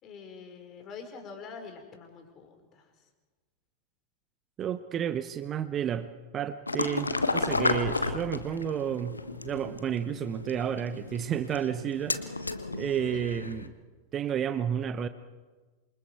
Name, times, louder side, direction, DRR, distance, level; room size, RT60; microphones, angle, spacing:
voice 1, 0.0-2.9 13.1-13.2, left 5 dB, 30° left, 5 dB, 4.7 m, -45 dB
voice 2, 4.6-12.3 12.7-13.7 14.1-15.1, right 9 dB, 30° right, 12 dB, 0.9 m, -31 dB
sound 1, 6.7-13.7, left 3 dB, 80° left, 1.1 m, -32 dB
27.5 x 24.5 x 4.6 m, 1.3 s
figure-of-eight pair, 90°, 0 cm